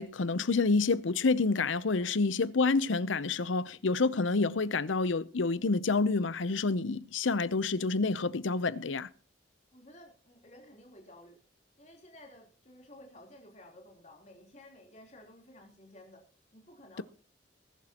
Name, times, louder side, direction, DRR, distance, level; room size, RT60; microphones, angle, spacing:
voice 1, 0.0-9.1, left 3 dB, 85° left, 0.7 m, -28 dB
voice 2, 9.7-11.4 11.8-16.2 16.5-17.0, left 1 dB, 35° left, 3.6 m, -54 dB
21.0 x 12.0 x 3.0 m
head